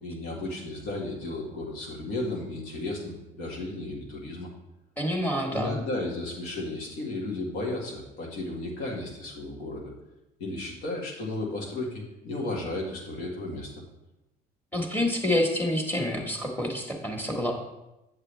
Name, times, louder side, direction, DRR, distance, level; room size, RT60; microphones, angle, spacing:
voice 1, 0.0-4.5 5.5-9.9 10.4-13.8, left 2 dB, 85° left, -1 dB, 2.1 m, -34 dB
voice 2, 5.0-5.8 14.7-17.5, left 1 dB, 10° left, 1 dB, 1.5 m, -27 dB
8.0 x 7.2 x 3.4 m, 0.94 s
cardioid pair, 110°, 17 cm